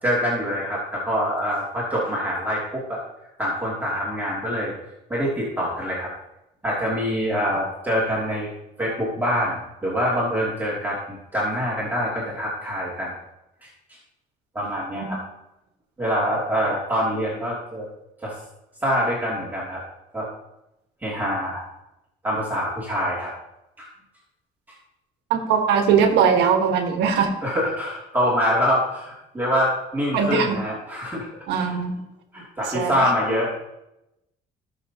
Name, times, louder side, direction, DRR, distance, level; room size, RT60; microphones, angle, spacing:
voice 1, 0.0-3.0 3.4-4.7 5.1-6.1 6.6-8.5 8.8-9.5 9.8-13.1 13.6-13.7 14.5-15.2 16.0-17.9 18.2-18.3 18.8-19.8 20.1-20.3 21.0-21.6 22.2-23.3 23.8-23.9 27.4-31.3 31.5-31.8 32.3-33.5, equal, 10° right, -6 dB, 2.9 m, -25 dB
voice 2, 25.3-27.3 30.1-30.6 31.5-32.0 32.7-33.0, right 6 dB, 85° right, 4 dB, 1.7 m, -20 dB
17.0 x 6.5 x 3.0 m, 0.90 s
cardioid pair, 110°, 17 cm